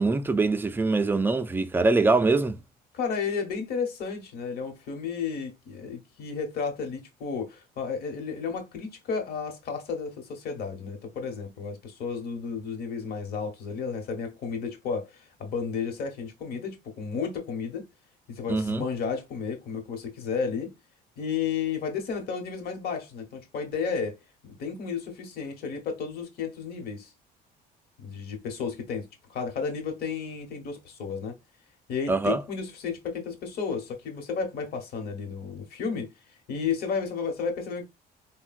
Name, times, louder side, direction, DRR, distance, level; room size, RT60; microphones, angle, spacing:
voice 1, 0.0-2.6 18.5-18.8 32.1-32.4, right 3 dB, 10° right, 0.3 m, -23 dB
voice 2, 2.9-17.9 18.3-20.7 21.2-24.2 24.4-27.1 28.0-31.3 31.9-36.1 36.5-37.8, left 5 dB, 65° left, 1.0 m, -32 dB
3.7 x 2.1 x 2.3 m
cardioid pair, 110°, 17 cm